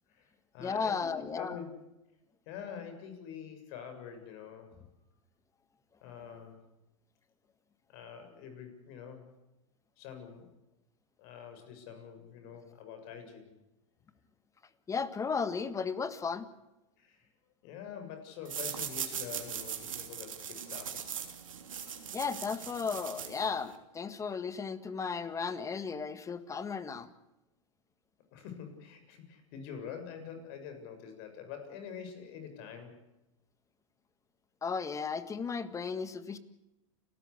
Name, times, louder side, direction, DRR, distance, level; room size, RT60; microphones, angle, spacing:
voice 1, 0.1-1.8 2.5-4.7 6.0-6.6 7.9-9.3 10.0-10.5 11.2-13.5 17.0-17.3 17.6-21.1 28.3-33.0, left 7 dB, 55° left, 6 dB, 6.9 m, -46 dB
voice 2, 0.6-1.6 14.9-16.5 22.1-27.1 34.6-36.4, left 5 dB, 20° left, 13 dB, 1.8 m, -35 dB
sound 1, 18.4-23.8, right 8 dB, 85° right, 3.2 m, -40 dB
30.0 x 14.0 x 8.5 m, 0.94 s
hypercardioid pair, 110°, 17 cm